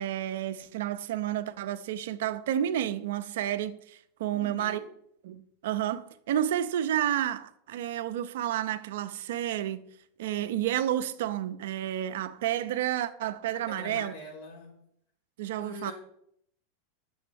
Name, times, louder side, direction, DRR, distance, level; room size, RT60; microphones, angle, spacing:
voice 1, 0.0-4.8 5.2-9.9 10.2-14.1 15.4-15.9, right 11 dB, 70° right, 0.5 m, -30 dB
voice 2, 4.3-4.9 13.5-14.7 15.6-15.9, left 1 dB, 75° left, 3.6 m, -43 dB
8.7 x 6.9 x 3.4 m
hypercardioid pair, 105°, 0 cm